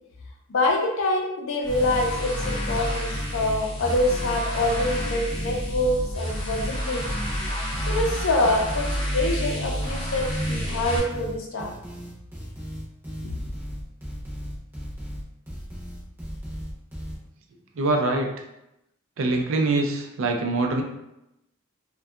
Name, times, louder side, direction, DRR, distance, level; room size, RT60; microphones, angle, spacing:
voice 1, 0.5-7.0 7.6-11.7, left 1 dB, 65° left, 0 dB, 0.5 m, -25 dB
sound 1, 1.6-11.0, equal, 25° left, 0.8 m, -30 dB
sound 2, 1.7-17.2, equal, 10° right, 0.7 m, -36 dB
voice 2, 17.7-18.4 19.2-20.8, right 2 dB, 60° right, 2 dB, 0.4 m, -24 dB
2.6 x 2.2 x 2.3 m, 0.86 s
head